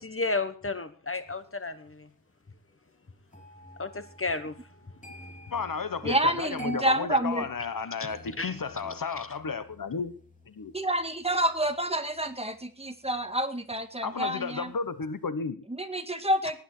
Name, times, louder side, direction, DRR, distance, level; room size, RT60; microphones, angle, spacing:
voice 1, 0.0-2.1 3.8-4.5 8.4-8.5, left 3 dB, 35° left, 1.3 m, -32 dB
sound 1, 3.3-14.3 14.6-14.9, right 2 dB, 20° left, 3.3 m, -48 dB
voice 2, 5.5-10.2 10.5-10.7 14.0-15.6, left 5 dB, 65° left, 1.2 m, -33 dB
voice 3, 6.0-7.5 10.7-14.7 15.8-16.6, right 1 dB, 15° right, 1.9 m, -28 dB
19.0 x 9.0 x 4.5 m
wide cardioid pair, 100°, 36 cm